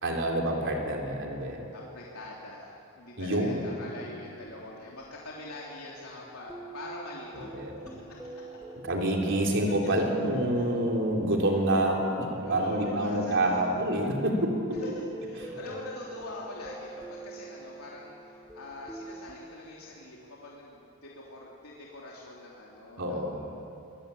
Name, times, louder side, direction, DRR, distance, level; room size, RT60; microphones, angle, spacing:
voice 1, 0.0-1.6 3.2-3.7 7.5-7.7 8.8-14.8 15.5-15.6 23.0-23.4, right 1 dB, 60° right, 0 dB, 3.9 m, -27 dB
voice 2, 1.7-7.5 7.8-8.0 8.5-8.6 9.3-9.9 10.5-10.7 12.4-13.6 14.8-18.1 18.5-23.6, left 2 dB, 85° left, -4 dB, 3.3 m, -43 dB
sound 1, 3.8-19.4, right 2 dB, 5° right, 1.7 m, -45 dB
25.5 x 20.5 x 8.7 m, 2.9 s
head